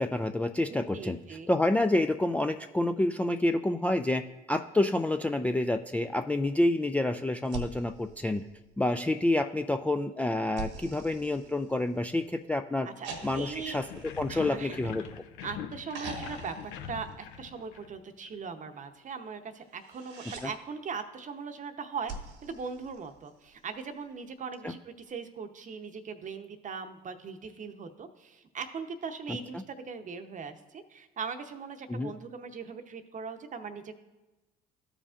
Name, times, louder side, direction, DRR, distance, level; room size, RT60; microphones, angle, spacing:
voice 1, 0.0-1.2 1.5-4.2 4.5-8.4 8.8-12.9 13.2-13.8 14.2-15.0 20.4-20.5 24.6-24.7 31.9-32.1, left 1 dB, 5° left, 6 dB, 0.3 m, -28 dB
voice 2, 0.7-1.5 12.8-13.8 14.3-15.1 15.4-22.1 22.4-33.9, right 5 dB, 40° right, 8 dB, 0.8 m, -40 dB
sound 1, 7.5-9.0 10.6-12.2 13.0-15.3 15.9-17.7 19.7-20.5 22.1-23.6 25.1-25.2, right 3 dB, 70° right, 1.1 m, -44 dB
sound 2, 13.7-18.3, left 9 dB, 70° left, 0.6 m, -43 dB
14.0 x 5.0 x 2.5 m, 1.1 s
hypercardioid pair, 60°, 20 cm